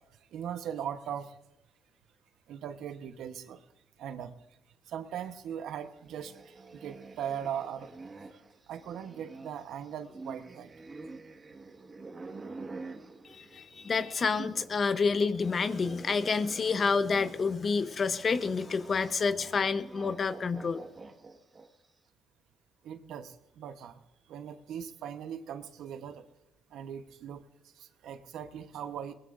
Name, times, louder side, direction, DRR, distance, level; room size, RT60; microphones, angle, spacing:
voice 1, 0.0-1.4 2.5-3.6 4.0-4.6 4.8-7.9 8.3-10.7 22.8-24.0 24.3-26.3 26.7-29.1, right 9 dB, 80° right, 9 dB, 1.0 m, -40 dB
sound 1, 6.0-14.8 15.1-21.9, right 3 dB, 35° right, 1.6 m, -48 dB
voice 2, 13.3-20.8, left 5 dB, 40° left, 12 dB, 0.9 m, -29 dB
21.5 x 19.5 x 2.6 m, 0.95 s
cardioid pair, 90°, 0 cm